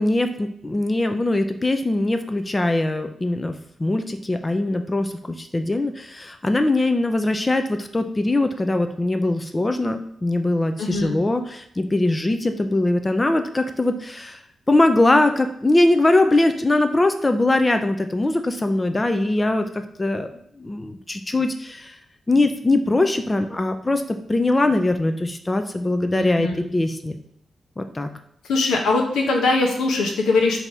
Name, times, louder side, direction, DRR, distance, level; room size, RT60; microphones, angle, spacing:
voice 1, 0.0-14.4 14.7-19.7 20.0-20.3 20.6-22.0 22.3-27.2 27.8-28.1, left 2 dB, 25° left, 7 dB, 0.5 m, -21 dB
voice 2, 10.8-11.1 26.2-26.6 28.5-30.6, left 3 dB, 85° left, 1 dB, 0.9 m, -21 dB
3.9 x 2.8 x 4.6 m, 0.71 s
supercardioid pair, 50°, 0 cm